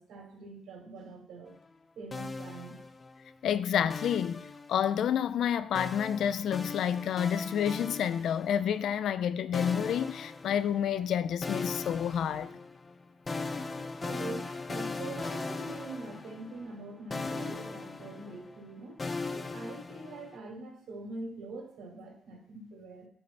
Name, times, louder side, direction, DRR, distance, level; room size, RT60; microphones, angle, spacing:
voice 1, 0.0-1.5 1.9-2.8 14.0-19.0 19.3-23.1, right 3 dB, 75° right, 3.0 m, -44 dB
sound 1, 2.1-3.3 3.9-5.1 5.7-8.8 9.5-11.1 11.4-16.9 17.1-20.4, left 3 dB, 30° left, 0.6 m, -39 dB
voice 2, 3.4-12.5, left 9 dB, 70° left, 0.4 m, -29 dB
9.8 x 5.0 x 4.2 m
cardioid pair, 90°, 0 cm